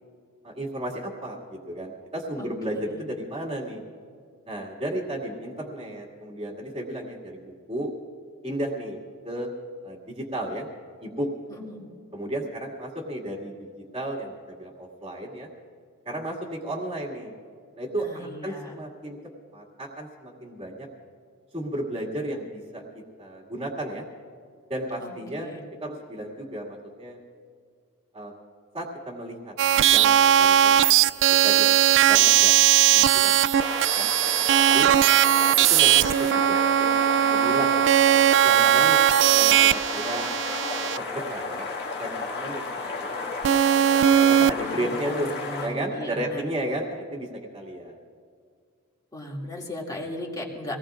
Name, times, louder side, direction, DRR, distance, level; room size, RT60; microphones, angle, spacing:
voice 1, 0.4-3.8 4.5-7.9 8.4-9.0 9.2-9.5 9.8-10.7 11.0-11.3 12.1-15.5 16.1-17.3 17.8-19.2 19.5-20.9 21.5-22.8 23.2-24.0 24.7-25.5 25.8-27.2 28.1-28.3 28.7-29.5 29.9-34.1 34.5-34.9 35.7-36.9 37.3-37.9 38.4-39.0 39.3-40.3 40.8-41.7 42.0-43.3 43.7-45.3 45.6-48.0, right 1 dB, 20° right, -4 dB, 2.2 m, -34 dB
voice 2, 11.5-11.8 17.9-18.8 25.0-25.6 44.6-46.4 49.1-50.8, left 1 dB, 15° left, -3 dB, 2.5 m, -37 dB
sound 1, 29.6-41.0 43.4-44.5, right 11 dB, 55° right, 0.3 m, -19 dB
sound 2, 33.5-45.7, left 3 dB, 50° left, 2.0 m, -33 dB
25.5 x 19.0 x 2.5 m, 2.1 s
head